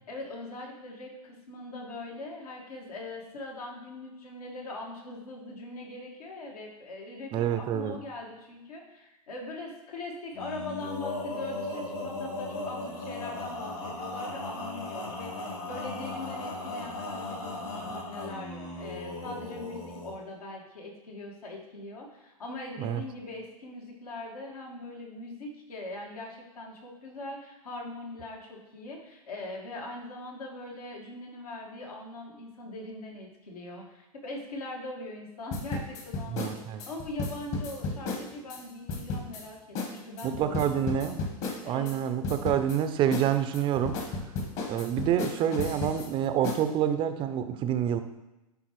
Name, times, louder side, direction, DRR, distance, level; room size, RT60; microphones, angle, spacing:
voice 1, 0.1-41.2 41.6-42.0, left 2 dB, 80° left, 0 dB, 1.8 m, -41 dB
voice 2, 7.3-8.0 22.8-23.0 36.3-36.8 40.2-41.2 41.6-44.0 44.7-48.0, right 9 dB, 25° right, 9 dB, 0.4 m, -27 dB
Male singing, 10.3-20.1, left 2 dB, 60° left, 2.4 m, -37 dB
sound 1, 35.5-38.6 38.9-39.4 39.8-39.9 40.2-42.0 42.2-42.8 43.1-46.1 46.4-46.6, left 3 dB, 40° left, 1.2 m, -33 dB
10.5 x 3.7 x 3.1 m, 0.98 s
hypercardioid pair, 120°, 19 cm